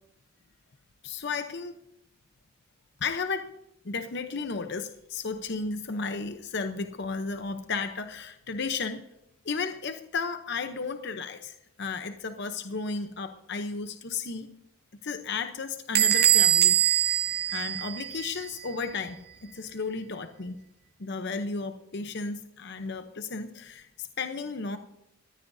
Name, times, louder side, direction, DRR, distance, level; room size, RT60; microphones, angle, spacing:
voice 1, 1.0-1.8 3.0-3.5 3.8-9.0 9.4-14.5 15.0-17.1 17.5-20.6 21.0-24.8, left 4 dB, 55° left, 8 dB, 0.8 m, -34 dB
Bell / Door, 15.9-18.4, right 12 dB, 50° right, 0.6 m, -23 dB
19.5 x 14.5 x 2.7 m, 0.83 s
head